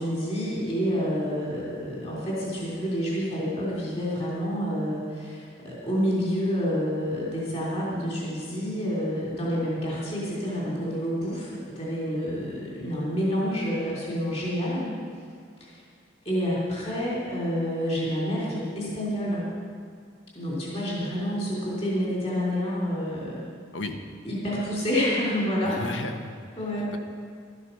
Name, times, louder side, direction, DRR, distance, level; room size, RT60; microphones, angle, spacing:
voice 1, 0.0-11.5 11.8-14.9 15.6-15.7 16.2-19.5 20.3-23.4 24.2-25.9 26.6-26.9, equal, 35° left, -6 dB, 3.1 m, -28 dB
voice 2, 25.6-26.4 26.7-27.0, left 2 dB, 85° left, 6 dB, 1.0 m, -34 dB
12.5 x 9.8 x 5.7 m, 2.1 s
head